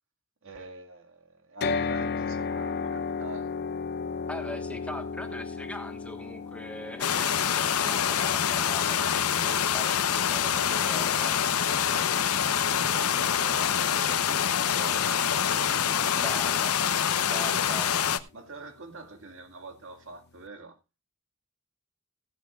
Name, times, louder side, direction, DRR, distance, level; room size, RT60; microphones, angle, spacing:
voice 1, 0.4-3.5 11.1-16.3 18.3-20.8, right 3 dB, 65° right, 2.0 m, -45 dB
sound 1, 1.6-15.7, left 5 dB, 50° left, 0.7 m, -36 dB
voice 2, 4.3-11.4 16.2-16.9 17.2-18.0, left 1 dB, 5° left, 1.3 m, -41 dB
sound 2, 7.0-18.2, left 8 dB, 80° left, 0.8 m, -26 dB
16.5 x 11.0 x 2.4 m
head